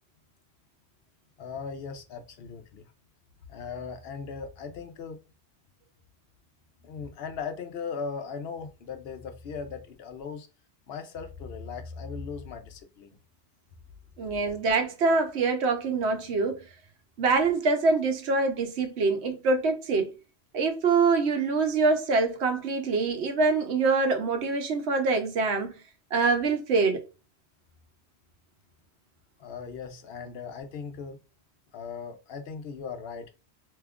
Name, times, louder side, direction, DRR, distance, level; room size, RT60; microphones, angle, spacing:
voice 1, 1.4-2.9 3.5-5.2 6.8-10.5 10.9-13.2 29.4-31.2 31.7-33.3, left 5 dB, 70° left, 0.8 m, -38 dB
voice 2, 14.2-16.6 17.2-20.1 20.5-25.7 26.1-27.0, right 4 dB, 85° right, 1.0 m, -25 dB
2.9 x 2.3 x 3.4 m
omnidirectional pair, 1.1 m